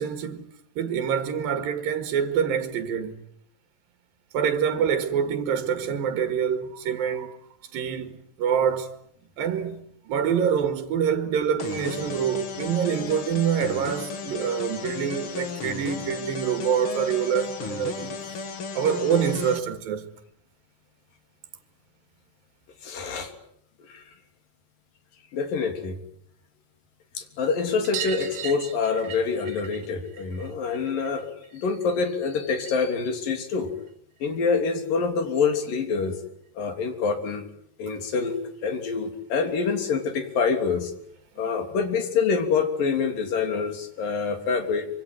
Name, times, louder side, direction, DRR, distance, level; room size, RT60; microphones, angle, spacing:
voice 1, 0.0-3.2 4.3-7.4 7.7-8.9 9.4-18.2 18.8-20.1, right 7 dB, 90° right, 3.6 m, -26 dB
sound 1, 11.6-19.6, left 5 dB, 45° left, 2.1 m, -35 dB
voice 2, 22.8-23.3 23.8-24.1 25.3-26.0 27.1-33.7 34.2-36.2 36.5-37.4 37.8-40.9 41.4-44.9, left 5 dB, 75° left, 4.9 m, -26 dB
sound 2, 27.8-33.0 33.2-34.4 35.8-35.9 36.1-36.2 36.5-36.6 37.8-37.9 38.2-38.3 38.7-38.8 40.0-40.1 40.9-41.0, right 9 dB, 60° right, 2.7 m, -39 dB
25.5 x 25.0 x 9.2 m
omnidirectional pair, 4.0 m